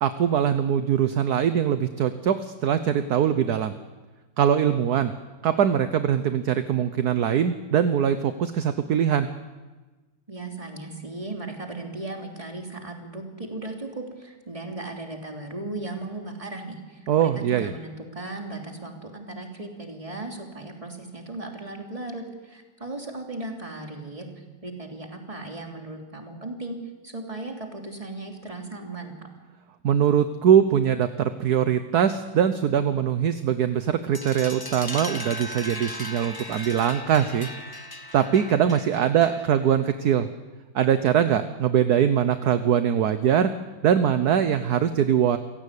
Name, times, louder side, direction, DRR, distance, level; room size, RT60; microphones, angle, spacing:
voice 1, 0.0-3.7 4.4-5.1 5.4-9.3 17.1-17.7 29.8-37.5 38.1-40.3 40.7-43.5 43.8-45.4, right 9 dB, 60° right, 10 dB, 1.2 m, -22 dB
voice 2, 10.3-24.2 24.6-26.8 27.0-29.3, right 2 dB, 15° right, 2 dB, 3.3 m, -36 dB
sound 1, 34.1-39.7, left 2 dB, 15° left, 1.0 m, -37 dB
28.0 x 16.5 x 8.4 m, 1.2 s
omnidirectional pair, 2.2 m